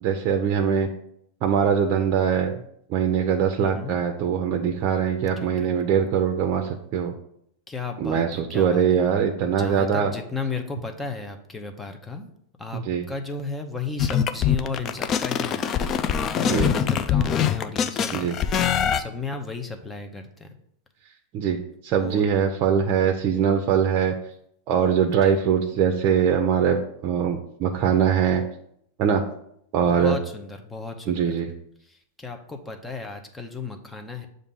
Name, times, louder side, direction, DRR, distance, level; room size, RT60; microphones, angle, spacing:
voice 1, 0.0-0.9 1.4-2.5 2.9-7.1 8.0-10.1 12.7-13.0 16.4-16.7 18.1-18.4 21.3-24.1 24.7-28.4 29.0-29.2 29.7-30.2 31.1-31.5, right 7 dB, 45° right, 4 dB, 0.6 m, -22 dB
voice 2, 3.6-4.0 5.4-5.7 7.7-9.0 9.6-12.3 12.6-12.8 13.1-20.5 22.0-22.2 25.1-25.4 29.8-31.4 31.8-34.3, left 4 dB, 10° left, 5 dB, 0.8 m, -35 dB
sound 1, 14.0-19.0, left 8 dB, 35° left, 0.4 m, -23 dB
7.0 x 2.6 x 5.4 m, 0.72 s
supercardioid pair, 125°, 0 cm